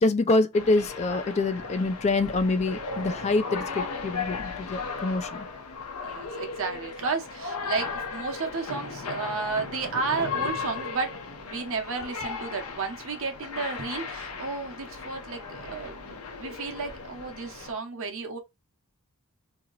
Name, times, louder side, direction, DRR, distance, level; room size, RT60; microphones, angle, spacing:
voice 1, 0.0-5.4, left 2 dB, 30° left, 0.4 m, -26 dB
sound 1, 0.5-17.7, left 4 dB, 80° left, 0.9 m, -36 dB
voice 2, 6.0-18.4, right 4 dB, 65° right, 0.9 m, -33 dB
2.9 x 2.8 x 3.9 m
head